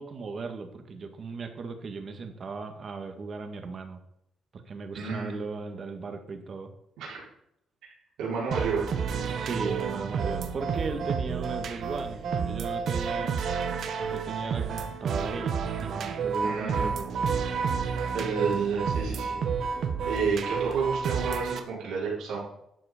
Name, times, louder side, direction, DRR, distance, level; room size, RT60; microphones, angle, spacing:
voice 1, 0.0-4.0 4.5-6.7 9.3-13.7 14.1-17.1, right 4 dB, 45° right, 7 dB, 1.9 m, -37 dB
voice 2, 4.9-5.4 7.0-7.2 8.2-8.8 16.4-16.9 18.1-19.4 20.1-22.4, right 5 dB, 85° right, -5 dB, 4.5 m, -30 dB
sound 1, 8.5-21.6, right 6 dB, 65° right, 1.3 m, -30 dB
12.0 x 7.9 x 5.2 m, 0.78 s
cardioid pair, 90°, 0 cm